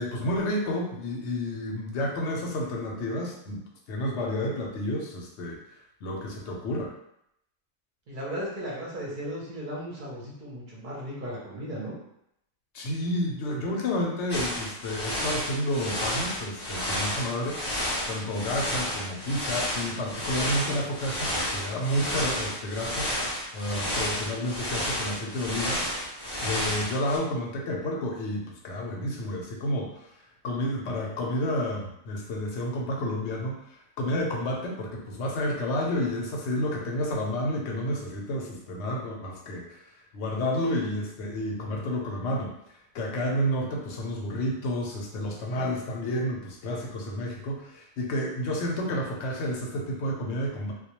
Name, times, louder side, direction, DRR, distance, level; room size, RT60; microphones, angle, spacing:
voice 1, 0.0-5.6 6.0-6.9 12.7-17.6 18.1-23.1 23.5-25.8 26.4-30.1 30.4-39.8 40.1-42.5 42.9-50.7, left 1 dB, 65° left, -1 dB, 0.8 m, -30 dB
voice 2, 8.1-11.9, equal, 50° right, -5 dB, 0.7 m, -36 dB
sound 1, 14.3-27.2, equal, 40° left, 0.3 m, -31 dB
2.2 x 2.2 x 2.9 m, 0.77 s
omnidirectional pair, 1.4 m